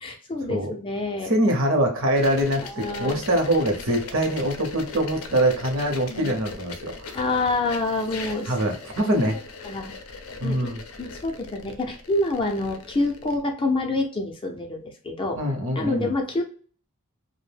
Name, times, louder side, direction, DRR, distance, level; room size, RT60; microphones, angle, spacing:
voice 1, 0.0-1.3 2.6-3.2 6.1-6.3 7.1-8.5 9.3-9.4 9.6-9.9 10.4-10.7 11.0-15.4 15.8-16.4, left 2 dB, 25° left, 2 dB, 0.4 m, -27 dB
voice 2, 1.2-7.2 8.5-9.4 10.4-10.8 15.3-16.1, right 1 dB, 60° right, 3 dB, 0.7 m, -24 dB
sound 1, 2.1-13.4, left 4 dB, 75° left, 0.5 m, -39 dB
2.6 x 2.1 x 3.2 m, 0.43 s
head